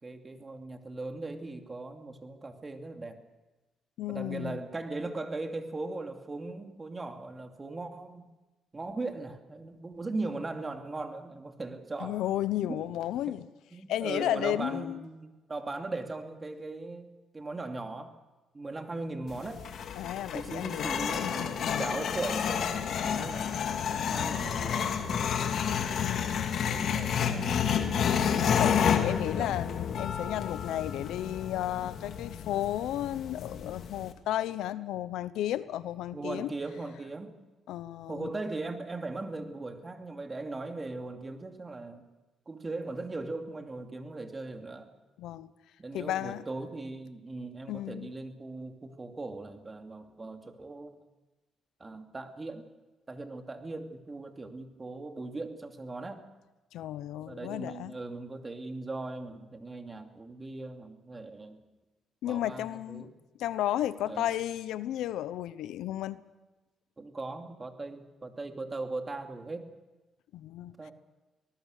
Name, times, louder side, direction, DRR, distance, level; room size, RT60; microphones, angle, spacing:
voice 1, 0.0-3.2 4.1-8.3 8.7-12.2 12.6-12.8 13.3-13.4 13.7-18.1 18.5-19.7 20.3-25.3 26.1-28.1 29.0-29.6 36.1-37.4 38.1-42.0 42.5-44.9 45.8-51.0 51.8-52.6 53.1-56.3 57.1-61.6 62.3-63.1 64.1-64.3 67.0-69.7 70.8-70.9, right 2 dB, 25° right, 5 dB, 2.7 m, -39 dB
voice 2, 4.0-4.6 12.0-13.4 13.9-15.0 20.0-20.9 21.2-21.9 26.0-26.6 28.6-36.5 37.7-38.3 45.2-45.5 45.9-46.4 47.7-48.1 56.7-58.0 62.2-63.1 63.4-66.2 70.3-70.9, left 12 dB, 85° left, 15 dB, 0.8 m, -33 dB
sound 1, 19.3-34.1, left 7 dB, 65° left, 2.4 m, -30 dB
24.5 x 19.5 x 6.6 m, 1.1 s
cardioid pair, 90°, 0 cm